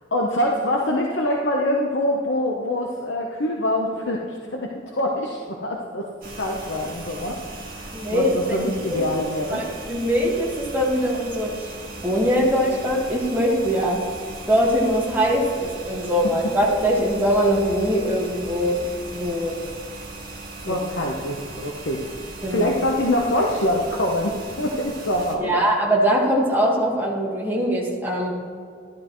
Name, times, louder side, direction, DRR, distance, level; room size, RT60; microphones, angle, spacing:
voice 1, 0.1-6.1 6.4-9.6 20.6-22.0 22.5-25.7, left 1 dB, 65° left, -1 dB, 0.9 m, -25 dB
sound 1, 6.2-25.4, right 2 dB, 50° right, 1.9 m, -38 dB
voice 2, 7.9-9.1 9.5-11.6 12.0-14.0 14.5-18.8 19.1-19.6 20.7-20.8 22.4-22.7 25.4-28.3, equal, 10° right, -3 dB, 1.7 m, -22 dB
12.0 x 11.0 x 3.1 m, 2.3 s
head